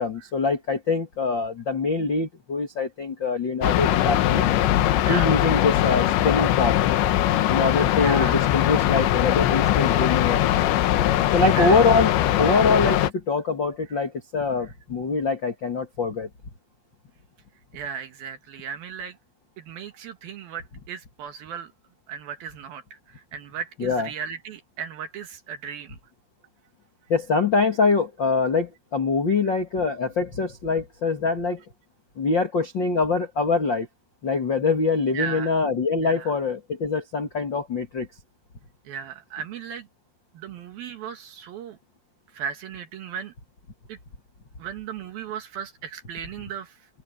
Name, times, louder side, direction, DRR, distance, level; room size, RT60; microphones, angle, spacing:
voice 1, 0.0-4.4 5.1-6.8 7.5-10.6 11.3-12.1 12.4-16.3 23.8-24.1 27.1-31.6 32.2-33.9 34.2-38.1, left 4 dB, 90° left, 1.0 m, -24 dB
sound 1, 3.6-13.1, left 12 dB, 70° left, 3.3 m, -21 dB
voice 2, 5.0-5.3 8.0-8.4 11.5-11.8 13.9-14.0 17.7-19.2 19.6-21.7 22.1-26.0 35.1-35.6 36.0-36.3 38.8-39.9 40.3-41.8 42.3-43.3 43.9-44.0 44.6-46.9, right 7 dB, 65° right, 2.7 m, -36 dB
open air
omnidirectional pair, 5.6 m